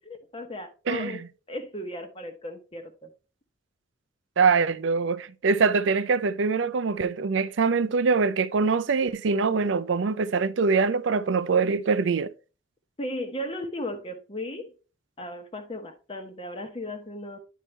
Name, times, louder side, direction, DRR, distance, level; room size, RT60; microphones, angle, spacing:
voice 1, 0.1-1.2 1.5-3.1 13.0-14.7 15.2-17.4, left 1 dB, 30° left, 1.0 m, -36 dB
voice 2, 4.4-12.3, right 5 dB, 75° right, 0.5 m, -23 dB
10.0 x 4.6 x 3.2 m
head